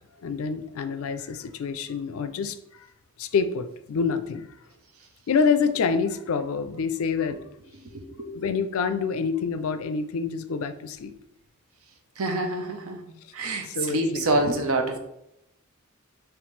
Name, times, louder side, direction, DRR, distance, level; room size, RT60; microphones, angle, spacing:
voice 1, 0.2-2.6 3.2-4.5 5.3-7.4 8.3-11.1 13.7-14.4, left 5 dB, 70° left, 10 dB, 0.4 m, -27 dB
voice 2, 7.7-8.3 12.2-13.0 13.3-15.0, right 2 dB, 70° right, 4 dB, 0.7 m, -27 dB
5.1 x 3.1 x 3.2 m, 0.82 s
head